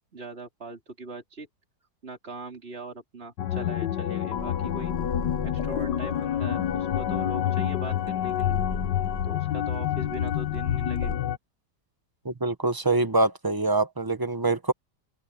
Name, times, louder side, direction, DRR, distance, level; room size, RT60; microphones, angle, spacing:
voice 1, 0.1-1.5 2.0-4.9 5.4-8.7 9.2-11.3 12.3-12.4, right 3 dB, 35° right, 3.8 m, -40 dB
sound 1, 3.4-11.4, left 11 dB, 85° left, 1.5 m, -28 dB
sound 2, 4.4-11.2, left 1 dB, 10° left, 1.1 m, -40 dB
voice 2, 12.2-14.7, right 2 dB, 20° right, 0.7 m, -25 dB
omnidirectional pair, 1.8 m